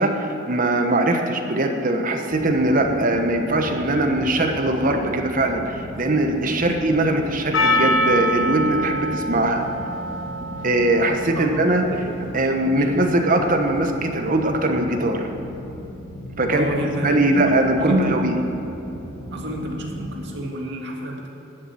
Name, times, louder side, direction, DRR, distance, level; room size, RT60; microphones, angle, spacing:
voice 1, 0.0-9.6 10.6-11.9 12.3-15.3 16.4-16.7 17.0-18.4, right 1 dB, 45° right, 4 dB, 1.2 m, -21 dB
sound 1, 2.3-20.2, equal, 55° left, 2.5 m, -36 dB
Percussion, 7.5-12.1, equal, 80° left, 1.3 m, -25 dB
voice 2, 12.7-13.1 16.5-17.5 17.8-18.1 19.3-21.3, right 1 dB, 65° right, 0 dB, 1.9 m, -28 dB
11.5 x 7.3 x 9.1 m, 3.0 s
head